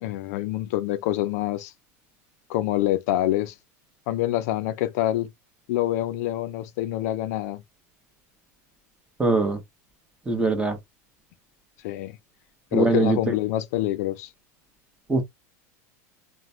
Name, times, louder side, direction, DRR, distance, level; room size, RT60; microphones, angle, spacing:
voice 1, 0.0-1.7 2.5-3.5 4.1-5.3 5.7-7.6 11.8-12.2 12.7-14.3, left 14 dB, 70° left, 0.4 m, -26 dB
voice 2, 9.2-9.6 10.3-10.8 12.7-13.3 15.1-15.2, right 3 dB, 10° right, 1.2 m, -22 dB
2.9 x 2.2 x 2.7 m
supercardioid pair, 115°, 9 cm